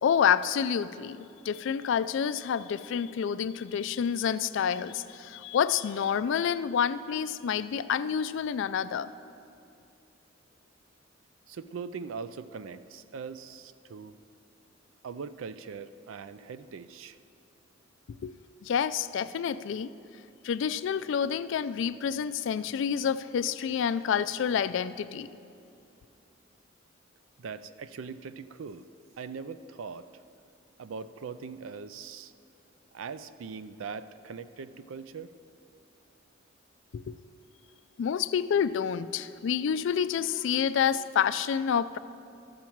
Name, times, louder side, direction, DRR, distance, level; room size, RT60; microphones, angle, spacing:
voice 1, 0.0-9.1 18.2-18.4 18.6-19.9 20.4-25.3 36.9-37.2 38.0-42.0, left 7 dB, 65° left, 14 dB, 0.3 m, -28 dB
voice 2, 11.5-14.2 15.0-17.2 27.4-28.9 29.2-30.1 30.8-32.3 32.9-35.3, right 5 dB, 75° right, 14 dB, 0.4 m, -41 dB
13.5 x 7.1 x 4.5 m, 2.6 s
head